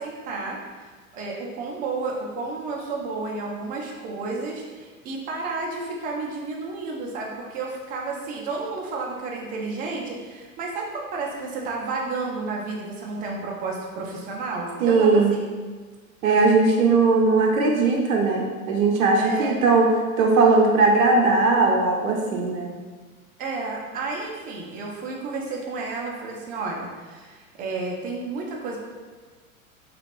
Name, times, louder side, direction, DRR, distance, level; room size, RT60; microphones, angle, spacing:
voice 1, 0.0-15.4 19.2-19.5 23.4-28.8, right 3 dB, 20° right, -1 dB, 0.4 m, -31 dB
voice 2, 14.8-15.3 16.2-19.9 20.2-22.7, right 3 dB, 70° right, 0 dB, 0.6 m, -19 dB
3.1 x 2.9 x 2.5 m, 1.4 s
figure-of-eight pair, 85°, 42 cm